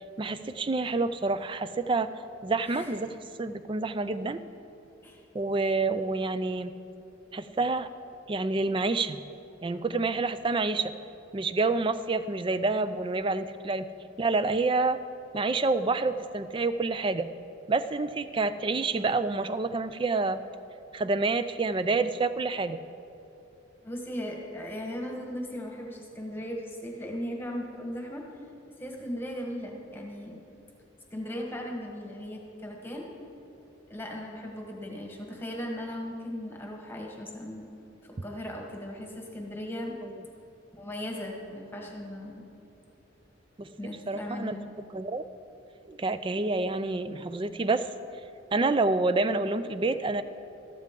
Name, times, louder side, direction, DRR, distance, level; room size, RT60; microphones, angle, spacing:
voice 1, 0.2-2.1 2.4-3.1 3.4-4.4 5.3-6.7 7.3-7.9 8.3-9.2 9.6-10.9 11.3-13.9 14.2-15.0 15.3-17.3 17.7-20.4 20.9-22.8 40.0-40.1 43.6-43.7 44.1-44.5 44.9-45.3 45.9-47.9 48.5-50.2, right 3 dB, 25° right, 12 dB, 0.4 m, -28 dB
voice 2, 23.8-28.2 28.8-30.4 31.1-33.1 33.9-37.7 38.0-39.9 40.7-42.4 43.8-44.6, equal, 10° left, 0 dB, 1.3 m, -37 dB
13.5 x 12.0 x 3.7 m, 2.9 s
head